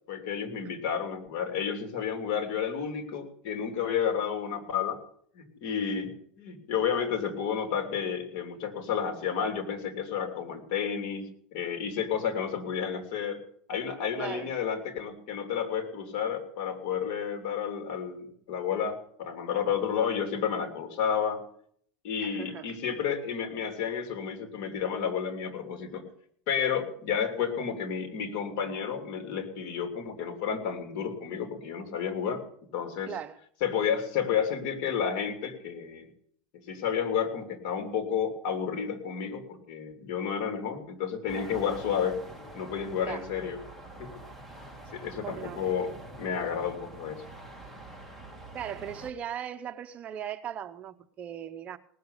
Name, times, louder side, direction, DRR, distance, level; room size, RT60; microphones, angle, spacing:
voice 1, 0.1-5.0 5.3-13.4 13.7-21.4 22.0-26.1 26.5-32.4 32.7-33.1 33.6-36.1 36.7-42.2 42.5-43.6 44.0-44.2 44.9-47.2, left 7 dB, 60° left, 3.0 m, -31 dB
voice 2, 14.2-14.5 22.2-22.7 33.1-33.4 43.0-43.2 45.2-45.7 48.5-51.8, right 9 dB, 35° right, 0.8 m, -38 dB
sound 1, 41.3-49.1, right 1 dB, 5° left, 2.4 m, -45 dB
18.5 x 6.8 x 8.2 m
supercardioid pair, 130°, 4 cm